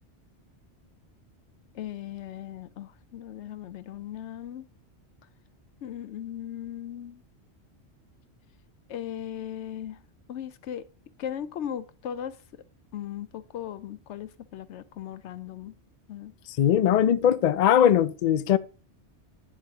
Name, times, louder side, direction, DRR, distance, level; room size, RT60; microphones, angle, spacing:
voice 1, 1.7-4.7 5.8-7.2 8.9-10.0 10.3-10.8 11.2-12.4 12.9-15.7 16.1-16.3, left 10 dB, 90° left, 0.9 m, -37 dB
voice 2, 16.6-18.6, left 9 dB, 60° left, 0.4 m, -20 dB
9.1 x 7.0 x 2.8 m
omnidirectional pair, 1.2 m